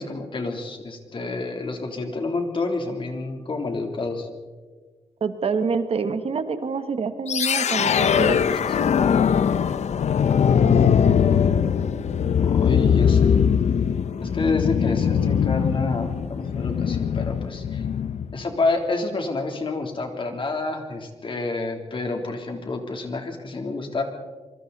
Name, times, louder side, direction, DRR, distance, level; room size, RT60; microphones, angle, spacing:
voice 1, 0.0-4.3 7.9-8.6 12.4-13.4 14.2-17.9 18.3-24.0, left 3 dB, 45° left, 3 dB, 3.4 m, -29 dB
voice 2, 5.2-8.4 10.8-11.0, right 5 dB, 55° right, 9 dB, 1.5 m, -26 dB
sound 1, 7.3-18.4, left 7 dB, 75° left, 0.8 m, -21 dB
26.5 x 24.0 x 4.2 m, 1.4 s
wide cardioid pair, 120°, 12 cm